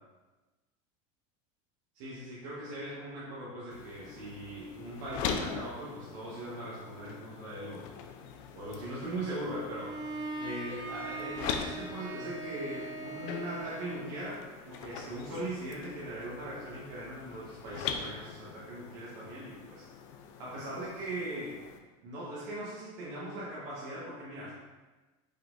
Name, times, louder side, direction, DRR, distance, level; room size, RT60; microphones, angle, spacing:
voice 1, 1.9-7.9 8.5-10.0 10.4-19.9 20.4-21.6 22.0-24.6, right 1 dB, 60° right, -7 dB, 1.2 m, -40 dB
sound 1, 3.7-21.8, left 6 dB, 55° left, 0.5 m, -42 dB
Bowed string instrument, 9.7-14.2, right 2 dB, 25° right, 0.5 m, -41 dB
5.4 x 3.8 x 2.6 m, 1.2 s
supercardioid pair, 145°, 17 cm